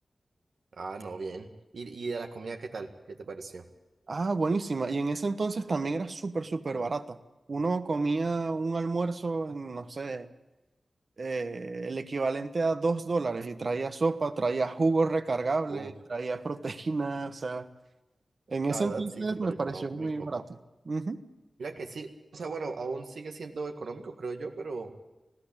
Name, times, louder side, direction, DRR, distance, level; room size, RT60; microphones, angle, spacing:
voice 1, 0.7-1.5 1.7-3.6 15.7-15.9 18.7-20.1 21.6-24.9, right 4 dB, 90° right, 4 dB, 1.8 m, -38 dB
voice 2, 4.1-7.2 7.5-10.3 11.2-17.7 18.5-20.4 20.8-21.2, right 3 dB, 55° right, 10 dB, 1.1 m, -30 dB
20.0 x 15.5 x 8.8 m, 1.1 s
wide cardioid pair, 90°, 0 cm